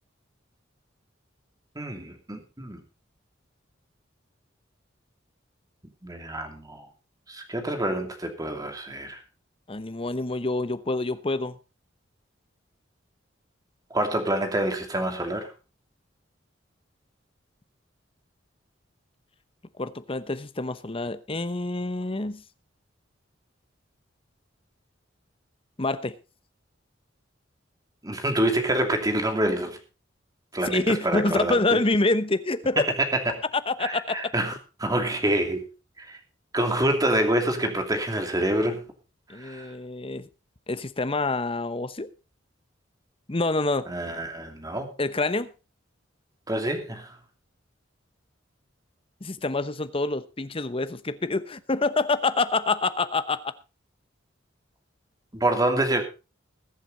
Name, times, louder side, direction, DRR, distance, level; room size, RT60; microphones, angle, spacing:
voice 1, 1.7-2.8 6.0-6.8 7.3-9.2 13.9-15.5 28.0-29.8 30.5-31.8 33.3-33.4 33.8-35.6 36.0-36.2 36.5-38.9 39.4-39.7 43.9-44.9 46.5-47.2 55.3-56.0, right 1 dB, 20° right, 2.7 m, -27 dB
voice 2, 9.7-11.6 19.8-22.4 25.8-26.1 30.6-32.9 33.7-34.3 39.3-40.3 40.7-42.1 43.3-43.9 45.0-45.5 49.2-53.5, left 2 dB, 30° left, 0.9 m, -27 dB
21.0 x 7.9 x 4.0 m
head